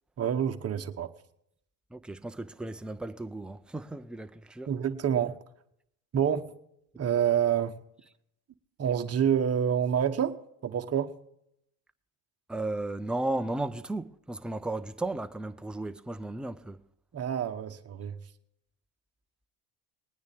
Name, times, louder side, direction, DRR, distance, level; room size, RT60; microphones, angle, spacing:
voice 1, 0.2-1.1 4.7-5.4 6.1-6.5 7.0-7.8 8.8-10.4 10.6-11.1 17.1-18.2, right 8 dB, 30° right, 1.1 m, -27 dB
voice 2, 1.9-4.7 12.5-16.8, right 2 dB, ahead, 0.4 m, -35 dB
20.0 x 9.5 x 3.5 m
supercardioid pair, 105°, 47 cm